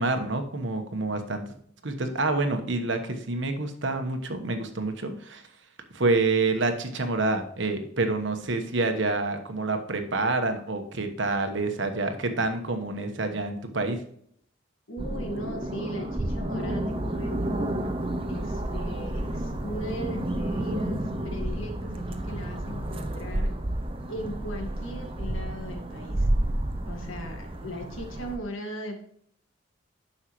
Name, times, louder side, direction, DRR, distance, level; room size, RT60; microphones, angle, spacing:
voice 1, 0.0-1.4 1.8-5.4 5.9-14.0, right 3 dB, 65° right, 7 dB, 1.1 m, -27 dB
voice 2, 14.9-17.7 18.3-23.5 24.1-26.3 26.9-29.0, equal, 80° left, 3 dB, 1.7 m, -38 dB
sound 1, 15.0-28.4, right 1 dB, 25° right, 0.7 m, -30 dB
10.0 x 6.5 x 3.1 m, 0.64 s
head